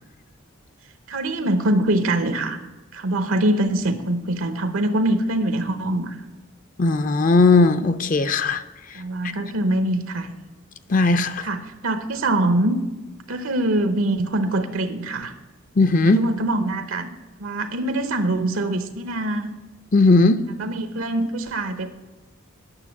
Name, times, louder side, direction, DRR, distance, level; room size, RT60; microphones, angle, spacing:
voice 1, 0.8-2.6 2.9-6.3 8.9-10.3 11.4-12.8 13.3-15.3 16.1-17.1 17.4-19.5 20.5-21.9, right 1 dB, 80° right, 8 dB, 0.9 m, -24 dB
voice 2, 6.8-8.6 10.9-11.5 15.8-16.2 19.9-20.4, left 3 dB, 40° left, 11 dB, 0.5 m, -17 dB
9.8 x 7.0 x 7.1 m, 1.1 s
head